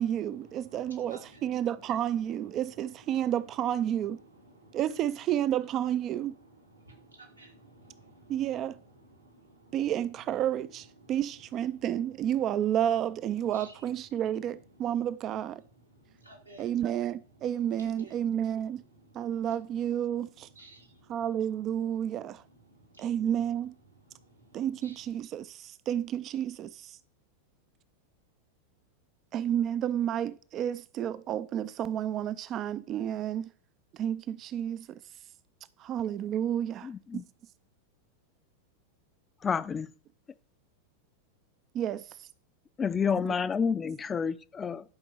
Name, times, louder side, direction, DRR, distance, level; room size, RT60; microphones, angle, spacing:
voice 1, 0.0-4.2 4.7-6.3 8.3-8.7 9.7-15.6 16.6-18.8 19.2-20.5 21.1-22.4 23.0-23.7 24.5-26.9 29.3-33.5 34.0-34.8 35.8-37.2 41.7-42.0 43.3-43.4, right 10 dB, 35° right, 0.4 m, -31 dB
voice 2, 0.6-1.6 2.5-2.6 3.1-3.3 4.3-4.8 6.6-8.7 9.0-9.8 11.0-11.1 13.5-13.7 16.2-16.7 18.0-18.1 18.9-19.0 20.5-20.9 23.0-23.1 24.8-25.0, right 2 dB, 90° right, 3.3 m, -54 dB
voice 3, 36.8-37.2 39.4-39.9 42.8-44.8, left 6 dB, 20° left, 0.6 m, -29 dB
11.0 x 5.2 x 6.5 m
figure-of-eight pair, 90°, 0 cm